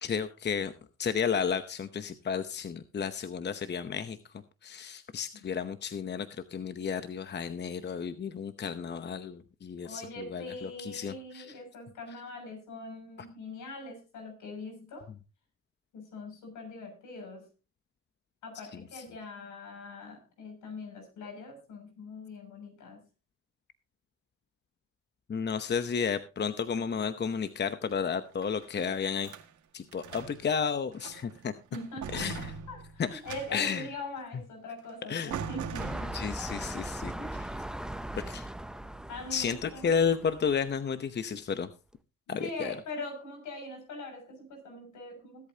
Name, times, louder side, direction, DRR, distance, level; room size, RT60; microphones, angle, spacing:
voice 1, 0.0-0.7 1.0-4.2 4.6-11.5 25.3-29.3 29.7-31.5 32.1-32.5 33.0-33.2 33.5-33.9 35.1-35.3 36.1-37.1 38.3-38.5 39.3-41.7 42.3-42.7, left 6 dB, 35° left, 11 dB, 0.9 m, -32 dB
voice 2, 9.8-15.1 15.9-17.5 18.4-23.0 31.7-36.1 37.2-37.7 38.1-38.3 39.1-39.9 42.4-45.5, left 2 dB, 75° left, 3 dB, 6.7 m, -42 dB
sound 1, 28.2-29.5 29.9-30.5 30.9-31.4 31.7-33.9 34.8-34.9 35.3-36.5, right 6 dB, 75° right, 2.0 m, -41 dB
sound 2, 35.8-40.8 41.4-41.5, right 1 dB, ahead, 0.6 m, -39 dB
21.0 x 8.5 x 2.8 m, 0.32 s
cardioid pair, 90°, 30 cm